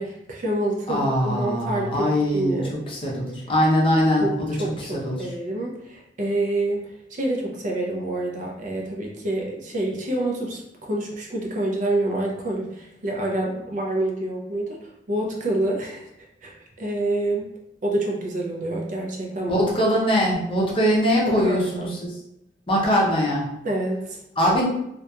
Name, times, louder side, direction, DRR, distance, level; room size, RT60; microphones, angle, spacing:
voice 1, 0.0-2.7 4.2-4.3 4.6-16.1 16.4-17.5 17.8-19.6 21.2-21.9 23.6-24.2, right 1 dB, 45° right, -1 dB, 0.5 m, -27 dB
voice 2, 0.9-2.6 2.9-5.3 19.5-22.1 22.7-23.5 24.4-24.6, equal, 30° left, -4 dB, 0.6 m, -22 dB
2.7 x 2.4 x 2.2 m, 0.82 s
head